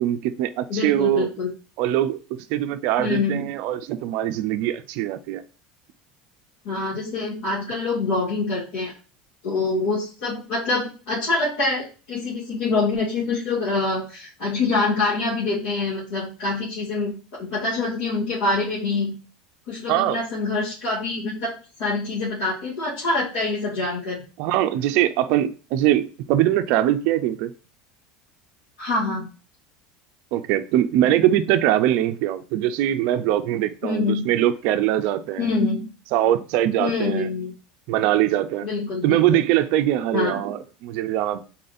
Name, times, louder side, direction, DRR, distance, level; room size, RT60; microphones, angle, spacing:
voice 1, 0.0-1.3 1.8-2.2 2.5-5.4 19.9-20.2 24.4-27.5 30.3-35.5 36.1-37.3 37.9-38.7 39.0-41.4, right 12 dB, 50° right, 0.4 m, -22 dB
voice 2, 0.7-1.5 3.0-3.5 6.6-8.9 9.4-19.1 19.7-24.2 28.8-29.3 33.8-34.3 35.4-35.9 36.8-37.5 38.6-39.4 40.1-40.3, left 3 dB, 70° left, 2.0 m, -25 dB
4.2 x 4.0 x 2.6 m
cardioid pair, 165°, 3 cm